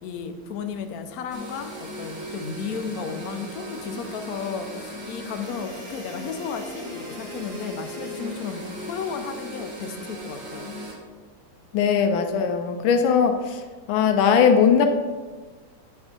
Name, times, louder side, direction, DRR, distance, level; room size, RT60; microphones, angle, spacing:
voice 1, 0.0-10.7, left 6 dB, 65° left, 7 dB, 0.9 m, -34 dB
sound 1, 1.3-10.9, right 1 dB, 40° right, 2.1 m, -37 dB
voice 2, 11.7-13.6 13.9-14.9, left 6 dB, 90° left, 6 dB, 1.4 m, -19 dB
9.1 x 3.5 x 5.1 m, 1.4 s
omnidirectional pair, 2.1 m